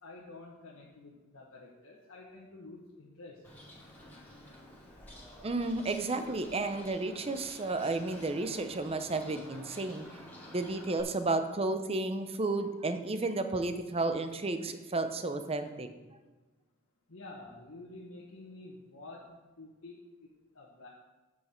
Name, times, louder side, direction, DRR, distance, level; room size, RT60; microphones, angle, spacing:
voice 1, 0.0-3.4 17.1-20.3 20.5-20.9, left 2 dB, 70° left, -4 dB, 1.4 m, -49 dB
Bird, 3.4-11.0, left 1 dB, 10° left, 2.4 m, -51 dB
voice 2, 5.4-10.0 10.5-15.9, right 2 dB, 25° right, 9 dB, 0.7 m, -32 dB
8.9 x 8.1 x 4.4 m, 1.2 s
head